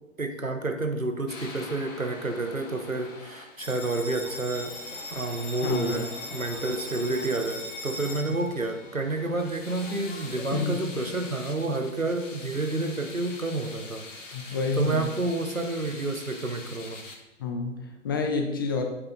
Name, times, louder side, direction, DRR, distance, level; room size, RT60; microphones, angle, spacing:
voice 1, 0.2-4.7 5.1-14.0 14.4-17.0, right 2 dB, 90° right, 6 dB, 1.2 m, -30 dB
sound 1, 1.3-17.2, left 3 dB, 70° left, 1.7 m, -45 dB
Bell, 3.6-10.6, left 2 dB, 45° left, 1.7 m, -40 dB
voice 2, 5.6-6.0 8.2-8.4 10.5-10.9 14.1-15.1 17.4-18.8, left 4 dB, 20° left, 4 dB, 0.5 m, -29 dB
8.5 x 6.7 x 3.9 m, 1.0 s
figure-of-eight pair, 120°, 40 cm